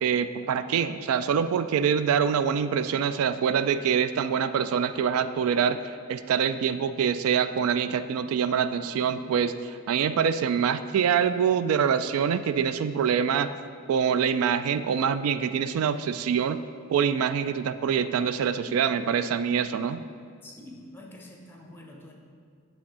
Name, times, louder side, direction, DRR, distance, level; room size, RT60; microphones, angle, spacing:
voice 1, 0.0-13.5 13.9-16.6 16.9-20.0, right 7 dB, 85° right, 12 dB, 0.3 m, -25 dB
voice 2, 20.4-22.1, left 1 dB, 10° left, 0 dB, 0.9 m, -46 dB
8.6 x 3.5 x 6.1 m, 2.3 s
head